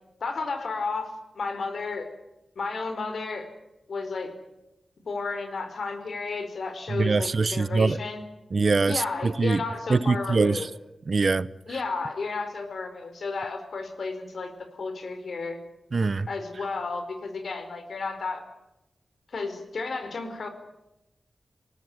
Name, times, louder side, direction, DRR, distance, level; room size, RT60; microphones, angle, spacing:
voice 1, 0.2-2.1 2.5-3.5 3.9-4.3 5.0-8.2 8.8-10.7 11.7-15.6 16.3-18.5 19.3-20.5, left 4 dB, 75° left, 4.8 m, -32 dB
voice 2, 6.9-8.0 8.5-9.6 9.9-10.6 11.1-11.5 15.9-16.3, right 4 dB, 50° right, 0.9 m, -23 dB
28.0 x 19.0 x 9.3 m
wide cardioid pair, 125°, 0 cm